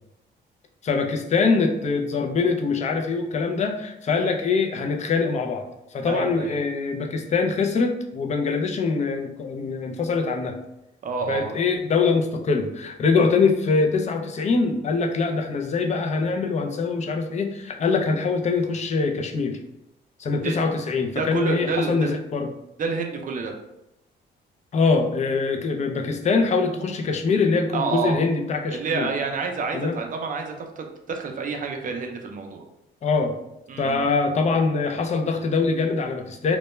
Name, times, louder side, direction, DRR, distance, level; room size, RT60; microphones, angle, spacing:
voice 1, 0.8-5.7 5.9-10.6 11.3-19.6 20.2-22.5 24.7-29.1 29.7-30.0 33.0-33.4 33.8-36.6, left 4 dB, 35° left, 4 dB, 0.4 m, -23 dB
voice 2, 6.0-6.6 11.0-11.6 20.3-20.6 21.2-22.2 22.8-23.5 27.7-28.2 28.7-32.6 33.7-34.1, right 4 dB, 40° right, 4 dB, 0.5 m, -29 dB
2.2 x 2.1 x 3.0 m, 0.88 s
cardioid pair, 90°, 20 cm